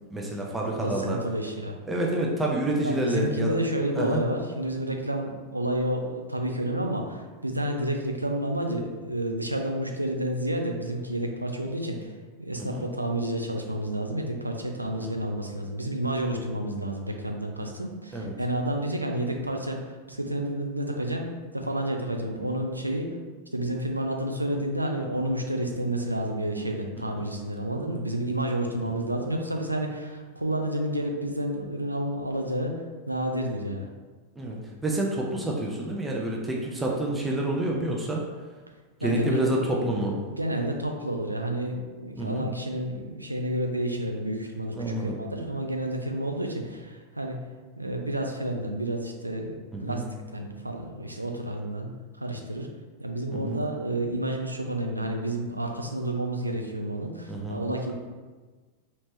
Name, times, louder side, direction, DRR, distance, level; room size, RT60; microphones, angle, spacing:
voice 1, 0.1-1.2 1.9-3.6 3.9-4.2 12.6-12.8 15.0-15.1 18.1-18.3 22.3-22.6 27.0-27.3 34.4-38.2 39.0-40.2 42.2-42.5 44.7-45.2 49.7-50.0 53.3-53.6 57.3-57.6, right 1 dB, 10° right, -2 dB, 0.5 m, -28 dB
voice 2, 0.6-1.8 2.8-12.1 12.4-19.8 20.1-21.3 21.5-23.1 23.5-32.7 33.1-33.9 39.0-39.5 40.3-47.4 47.8-50.0 50.3-51.9 52.2-52.7 53.0-57.9, right 1 dB, 85° right, 2 dB, 0.4 m, -30 dB
3.1 x 2.8 x 3.1 m, 1.3 s
figure-of-eight pair, 90°, 0 cm